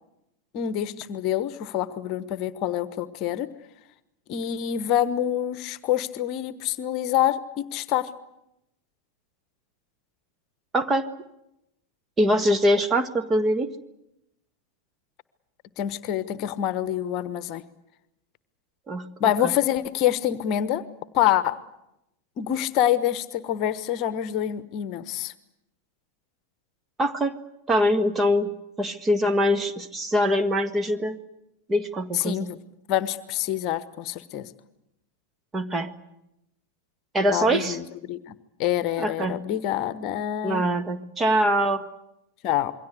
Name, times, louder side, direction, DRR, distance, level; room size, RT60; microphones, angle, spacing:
voice 1, 0.5-3.5 4.3-8.1 15.8-17.6 19.2-20.8 21.1-21.6 22.4-25.3 32.1-32.6 32.9-34.5 37.3-40.6 42.4-42.7, left 11 dB, 40° left, 15 dB, 1.2 m, -26 dB
voice 2, 10.7-11.1 12.2-13.7 18.9-19.1 19.4-19.5 27.0-27.4 27.7-28.5 28.8-31.2 31.7-32.5 35.5-35.9 37.1-37.8 39.0-39.4 40.4-41.9, equal, 15° right, 8 dB, 1.7 m, -23 dB
27.5 x 23.0 x 8.3 m, 0.86 s
figure-of-eight pair, 90°, 0 cm